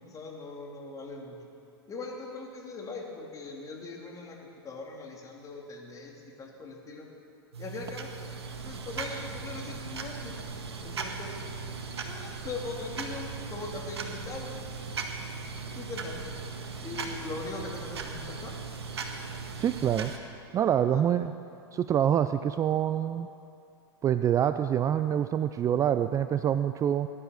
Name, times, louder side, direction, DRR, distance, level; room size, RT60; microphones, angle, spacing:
voice 1, 0.0-1.4 1.9-7.1 7.6-8.1 8.6-10.4 10.8-11.4 12.1-14.6 15.7-16.3 16.8-18.5 20.9-21.2, left 3 dB, 25° left, 0 dB, 3.0 m, -40 dB
sound 1, 7.5-20.2, right 4 dB, 80° right, 1.7 m, -38 dB
voice 2, 19.6-20.1 20.5-21.3 21.7-23.3 24.0-27.1, right 10 dB, 25° right, 11 dB, 0.4 m, -26 dB
19.0 x 11.0 x 6.5 m, 2.6 s
hypercardioid pair, 100°, 13 cm